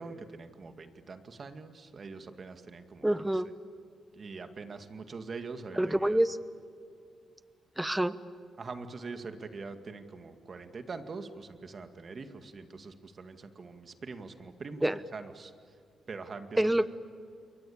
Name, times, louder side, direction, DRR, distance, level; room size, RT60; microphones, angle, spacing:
voice 1, 0.0-3.1 4.1-6.2 8.6-15.5 16.1-16.9, right 4 dB, 45° right, 8 dB, 2.1 m, -43 dB
voice 2, 3.0-3.5 5.8-6.4 7.8-8.2 14.8-15.0 16.6-16.9, right 1 dB, 10° right, 14 dB, 1.1 m, -26 dB
29.0 x 22.5 x 8.7 m, 2.3 s
cardioid pair, 90°, 0 cm